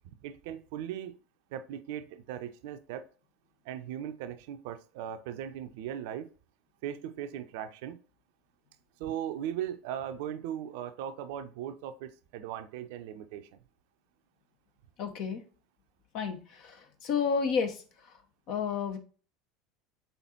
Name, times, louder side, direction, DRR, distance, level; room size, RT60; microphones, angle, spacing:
voice 1, 0.2-1.1 1.5-3.0 3.7-6.3 6.8-8.0 9.0-13.5, right 10 dB, 60° right, 10 dB, 0.5 m, -38 dB
voice 2, 15.0-15.4 16.1-16.4 16.6-16.8 17.0-17.7 18.5-19.0, left 6 dB, 55° left, 6 dB, 0.9 m, -30 dB
6.8 x 5.7 x 2.9 m, 0.38 s
figure-of-eight pair, 70°, 0 cm